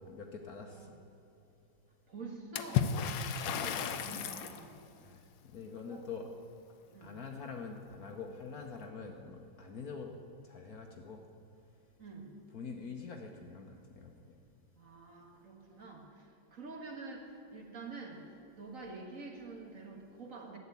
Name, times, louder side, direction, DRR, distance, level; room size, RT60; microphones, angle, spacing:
voice 1, 0.1-0.9 5.0-5.2 5.5-6.3 7.0-10.1 10.4-11.2 12.5-14.1, left 5 dB, 55° left, 3 dB, 1.2 m, -45 dB
voice 2, 2.1-4.8 5.9-6.1 6.9-7.2 12.0-12.3 14.8-20.6, right 3 dB, 45° right, 1 dB, 1.7 m, -47 dB
Water / Splash splatter, 2.6-4.6, left 8 dB, 70° left, 1.4 m, -33 dB
12.5 x 9.3 x 8.3 m, 2.8 s
omnidirectional pair, 2.2 m